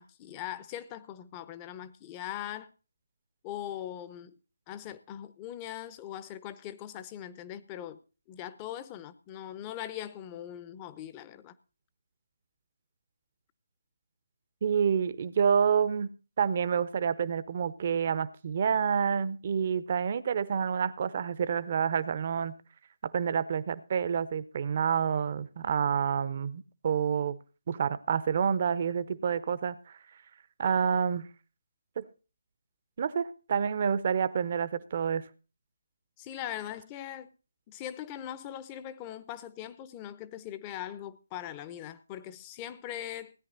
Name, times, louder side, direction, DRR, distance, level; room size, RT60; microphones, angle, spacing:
voice 1, 0.0-2.7 3.4-4.4 4.7-8.0 8.3-11.5 36.2-37.3 37.7-43.3, left 11 dB, 20° left, 0.8 m, -41 dB
voice 2, 14.6-16.1 16.4-22.6 23.0-27.4 27.7-29.8 30.6-31.3 32.0-32.1 33.0-35.2, right 7 dB, 45° right, 0.8 m, -28 dB
17.0 x 9.9 x 4.0 m
figure-of-eight pair, 145°, 0 cm